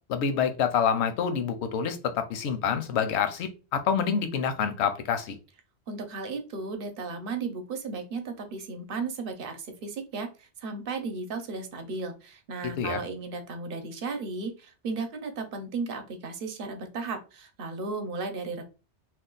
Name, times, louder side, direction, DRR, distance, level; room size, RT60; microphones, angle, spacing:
voice 1, 0.1-5.4 12.8-13.0, left 7 dB, 80° left, 9 dB, 0.9 m, -27 dB
voice 2, 5.9-18.6, right 4 dB, 60° right, 6 dB, 0.8 m, -35 dB
2.6 x 2.3 x 3.7 m, 0.32 s
omnidirectional pair, 1.1 m